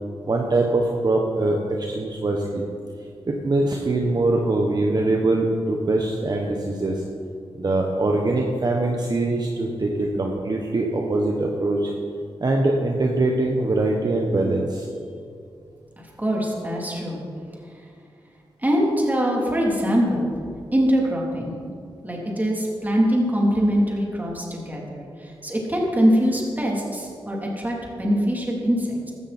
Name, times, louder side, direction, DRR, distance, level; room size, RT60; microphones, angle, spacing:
voice 1, 0.3-2.6 3.3-7.0 7.6-11.9 12.4-14.9, right 2 dB, 45° right, 0 dB, 1.4 m, -23 dB
voice 2, 16.0-17.2 18.6-20.3 20.7-21.5 22.0-29.1, equal, 15° right, -2 dB, 3.5 m, -23 dB
15.5 x 12.5 x 4.5 m, 2.3 s
wide cardioid pair, 85°, 10 cm